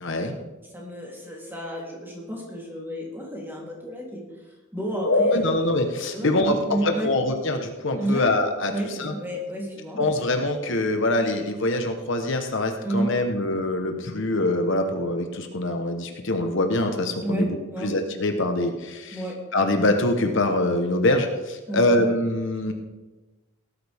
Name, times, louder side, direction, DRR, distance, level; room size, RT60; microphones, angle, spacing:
voice 1, 0.0-0.4 5.0-8.7 9.0-9.1 10.0-17.6 17.8-19.2 19.5-22.7, left 2 dB, 60° left, 5 dB, 1.1 m, -24 dB
voice 2, 0.7-4.2 4.7-5.4 6.1-7.1 7.9-8.2 8.7-10.1 12.8-13.1 17.2-17.9 19.1-19.3 21.7-22.0, right 1 dB, 10° right, -3 dB, 3.3 m, -31 dB
18.0 x 12.5 x 3.6 m, 1.2 s
head